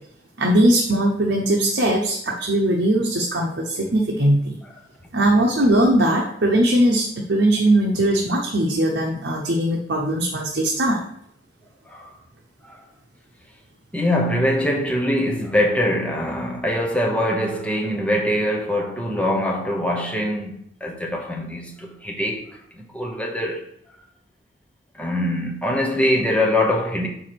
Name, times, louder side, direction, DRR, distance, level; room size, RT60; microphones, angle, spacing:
voice 1, 0.4-4.6 5.1-11.0, right 1 dB, 75° right, 0.9 m, -20 dB
voice 2, 13.9-23.6 24.9-27.1, left 1 dB, 5° left, 1.0 m, -23 dB
5.0 x 4.9 x 5.9 m
head